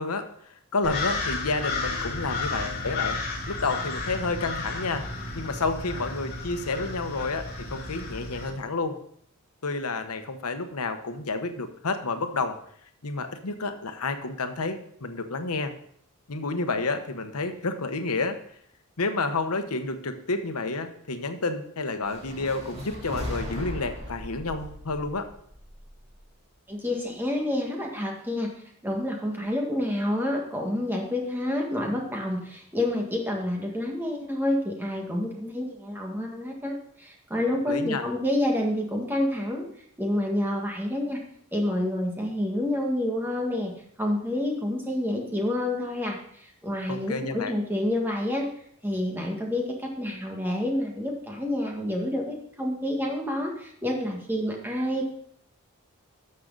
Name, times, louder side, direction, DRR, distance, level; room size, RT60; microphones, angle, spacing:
voice 1, 0.0-3.2 3.5-5.1 5.3-9.0 9.6-12.6 13.0-15.7 16.3-18.4 19.0-25.3 37.7-38.1 46.9-47.5, left 3 dB, 85° left, 8 dB, 1.0 m, -30 dB
sound 1, 0.8-8.5, left 3 dB, 45° left, 2.8 m, -32 dB
sound 2, 22.0-26.2, equal, 25° right, 2.6 m, -38 dB
voice 2, 26.7-28.5 28.8-39.7 40.0-41.2 41.5-43.7 44.0-48.5 48.8-55.1, left 1 dB, 10° right, 0 dB, 1.7 m, -28 dB
12.5 x 6.5 x 4.0 m, 0.64 s
head